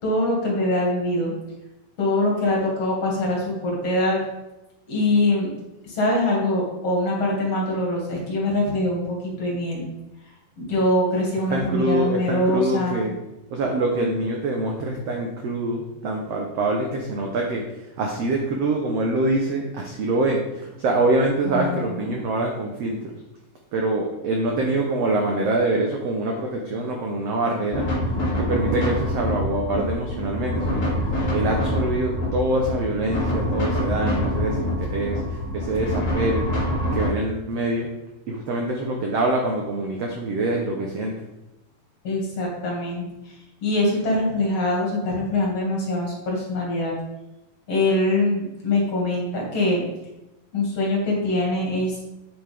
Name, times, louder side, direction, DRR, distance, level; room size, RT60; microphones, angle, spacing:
voice 1, 0.0-1.3 2.0-4.2 4.9-5.5 5.8-9.9 10.6-13.0 21.5-21.9 42.0-43.0 43.6-46.9 47.7-49.8 50.5-52.1, left 1 dB, 45° left, -2 dB, 2.9 m, -23 dB
voice 2, 11.5-13.1 13.5-23.1 23.7-27.9 28.4-36.5 36.9-37.9 38.3-41.1, right 2 dB, 75° right, 1 dB, 1.5 m, -25 dB
sound 1, 27.7-37.1, left 1 dB, 25° left, 2.1 m, -25 dB
8.6 x 7.8 x 3.5 m, 0.95 s
omnidirectional pair, 4.1 m